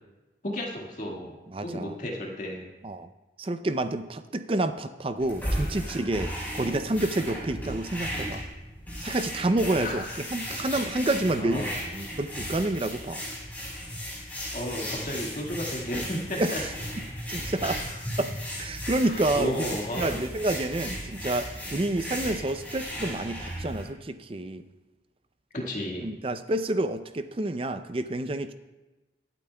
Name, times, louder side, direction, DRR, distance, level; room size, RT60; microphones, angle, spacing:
voice 1, 0.4-1.4 1.6-2.7 9.8-10.2 11.4-11.7 14.5-16.6 17.8-17.9 19.0-20.1 25.5-26.1, left 1 dB, 45° left, -1 dB, 1.8 m, -33 dB
voice 2, 1.5-1.9 2.8-3.1 3.4-8.4 9.0-10.0 10.3-13.3 16.4-16.7 17.3-17.8 18.2-18.3 18.6-19.6 20.0-24.6 26.0-28.5, right 2 dB, 30° right, 10 dB, 0.5 m, -29 dB
sound 1, 5.2-23.8, equal, 10° left, 4.2 m, -35 dB
23.5 x 9.1 x 2.3 m, 1.1 s
head